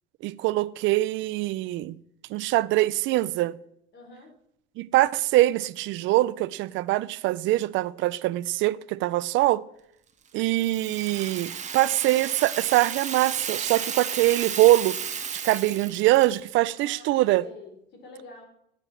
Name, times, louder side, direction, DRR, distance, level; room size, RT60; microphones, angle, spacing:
voice 1, 0.2-2.0 2.3-3.6 4.8-9.6 10.3-15.0 15.3-17.5, right 17 dB, 70° right, 0.5 m, -23 dB
voice 2, 3.9-4.3 16.7-18.4, left 3 dB, 55° left, 3.7 m, -47 dB
Rattle (instrument), 10.5-16.5, right 7 dB, 35° right, 1.2 m, -33 dB
8.6 x 7.9 x 7.5 m
cardioid pair, 105°, 21 cm